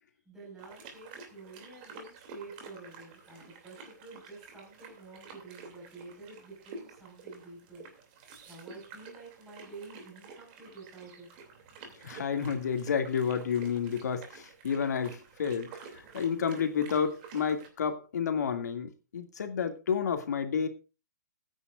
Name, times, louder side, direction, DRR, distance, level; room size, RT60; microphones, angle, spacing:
voice 1, 0.3-7.9 8.5-11.3, right 3 dB, 5° right, 5.1 m, -49 dB
sound 1, 0.6-17.7, right 4 dB, 30° right, 2.7 m, -50 dB
voice 2, 12.0-20.7, left 7 dB, 70° left, 2.3 m, -30 dB
20.0 x 9.7 x 2.5 m
hypercardioid pair, 170°, 9 cm